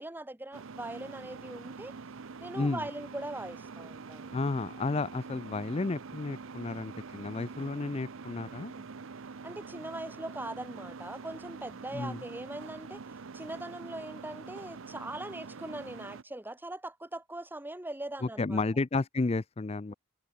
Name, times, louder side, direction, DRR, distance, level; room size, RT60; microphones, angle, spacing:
voice 1, 0.0-1.9 2.4-4.3 9.4-13.0 13.3-18.6, right 1 dB, 10° right, 1.2 m, -41 dB
sound 1, 0.5-16.2, right 4 dB, 65° right, 0.7 m, -45 dB
voice 2, 4.3-8.7 11.9-12.2 18.2-19.9, left 3 dB, 30° left, 0.5 m, -32 dB
head